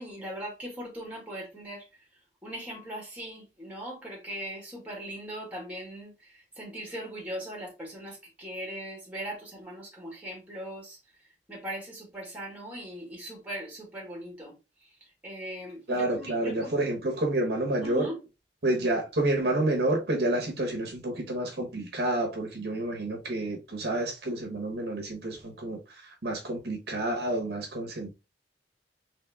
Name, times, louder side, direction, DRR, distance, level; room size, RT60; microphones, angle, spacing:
voice 1, 0.0-1.9 2.4-6.1 6.6-11.0 11.5-14.5 15.2-16.7 17.8-18.2, equal, 10° right, 1.9 m, -39 dB
voice 2, 15.9-18.1 18.6-25.8 26.2-28.1, right 1 dB, 65° right, 1.0 m, -29 dB
3.5 x 3.3 x 3.4 m
head